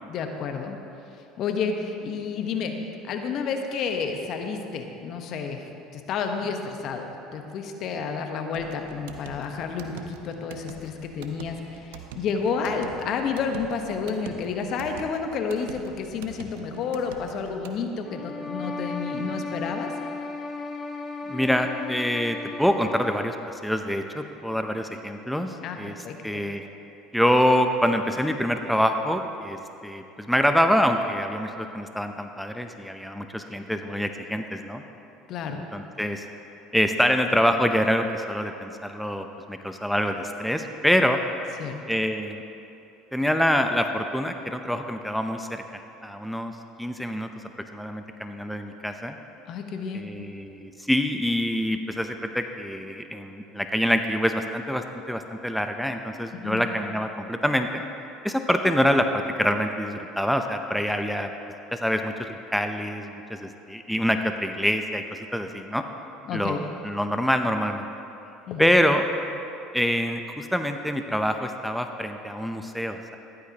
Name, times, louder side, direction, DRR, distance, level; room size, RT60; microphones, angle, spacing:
voice 1, 0.1-0.8 1.4-2.7 3.0-19.9 25.6-26.4 35.3-35.6 41.6-41.8 49.5-50.1 56.3-56.7 66.3-66.6 68.5-68.8, left 5 dB, 55° left, 5 dB, 1.1 m, -30 dB
sound 1, 8.5-17.8, right 7 dB, 75° right, 0.8 m, -44 dB
sound 2, 18.0-23.4, left 3 dB, 25° left, 1.3 m, -35 dB
voice 2, 21.3-25.9 26.2-26.7 27.1-34.8 35.5-36.2 36.7-41.2 41.9-42.4 43.1-46.5 46.8-47.3 47.7-49.2 49.9-57.8 58.2-61.3 61.7-65.8 66.3-67.9 68.6-69.1 69.7-73.2, equal, ahead, 6 dB, 0.7 m, -25 dB
14.5 x 12.0 x 2.9 m, 2.8 s
hypercardioid pair, 75°, 0 cm